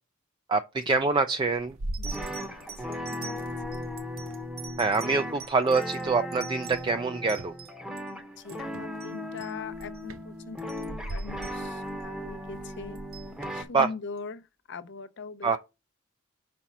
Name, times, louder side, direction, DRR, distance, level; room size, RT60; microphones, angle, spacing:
voice 1, 0.5-1.8 4.8-7.5 13.7-13.9 15.4-15.6, right 4 dB, 25° right, 0.4 m, -25 dB
sound 1, 1.0-3.1 3.3-5.6 6.0-7.6 8.7-9.0 9.4-13.6, right 1 dB, 90° right, 0.7 m, -41 dB
sound 2, 1.1-1.4 1.9-8.1 8.4-8.7 9.0-9.1 9.4-9.5 9.8-10.0 10.4-12.0 12.7-13.3 14.2-14.3, right 8 dB, 50° right, 1.7 m, -46 dB
sound 3, 2.0-13.6, left 1 dB, 5° right, 0.8 m, -37 dB
voice 2, 2.1-3.8 8.4-13.0 13.5-15.6, left 4 dB, 60° left, 0.6 m, -42 dB
5.1 x 4.2 x 5.9 m
head